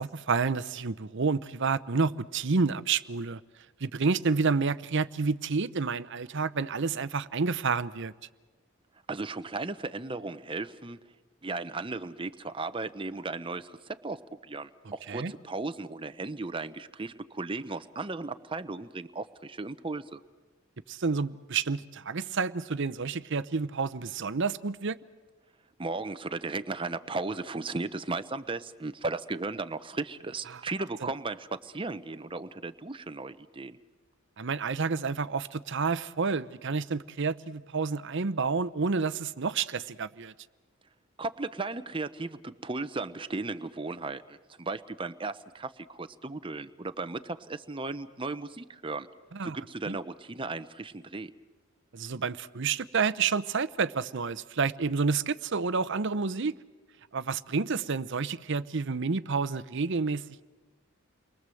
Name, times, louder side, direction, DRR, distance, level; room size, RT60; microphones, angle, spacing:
voice 1, 0.0-3.4 3.8-8.1 15.1-15.3 20.9-25.0 30.5-30.6 34.4-40.3 49.3-49.6 49.9-50.0 51.9-56.5 57.1-60.4, right 4 dB, 60° right, 0.8 m, -29 dB
voice 2, 9.1-11.0 11.4-20.2 25.8-33.8 41.2-49.1 49.4-51.3, right 3 dB, 25° right, 0.8 m, -36 dB
30.0 x 23.0 x 7.7 m
head